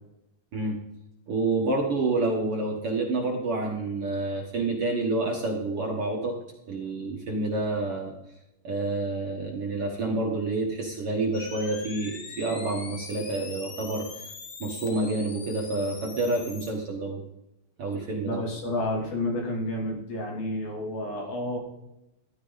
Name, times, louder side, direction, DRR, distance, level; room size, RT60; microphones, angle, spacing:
voice 1, 1.3-6.3 6.7-8.1 8.6-14.1 14.6-17.2 17.8-18.4, right 2 dB, 50° right, -1 dB, 1.9 m, -28 dB
sound 1, 11.3-16.7, left 4 dB, 55° left, 1.3 m, -42 dB
voice 2, 18.2-21.6, left 1 dB, 75° left, -1 dB, 4.9 m, -30 dB
13.5 x 13.0 x 4.0 m, 0.87 s
omnidirectional pair, 4.3 m